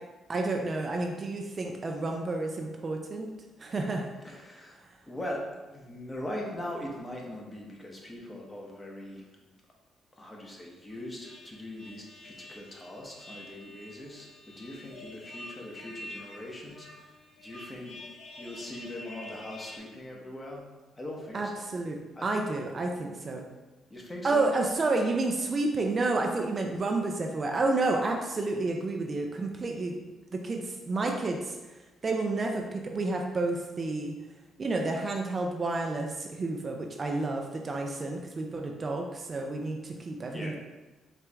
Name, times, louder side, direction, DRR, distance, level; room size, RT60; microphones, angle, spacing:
voice 1, 0.3-3.3 3.6-4.1 21.3-23.5 24.2-30.0 30.3-34.2 34.6-40.6, right 2 dB, 35° right, 2 dB, 0.4 m, -30 dB
voice 2, 4.2-9.3 10.1-18.0 18.4-21.6 22.2-22.3 23.9-24.5 40.3-40.6, left 1 dB, 20° left, -1 dB, 0.9 m, -41 dB
sound 1, 10.9-19.8, left 1 dB, 85° left, 1.0 m, -47 dB
4.5 x 2.5 x 3.3 m, 1.2 s
cardioid pair, 90°, 0 cm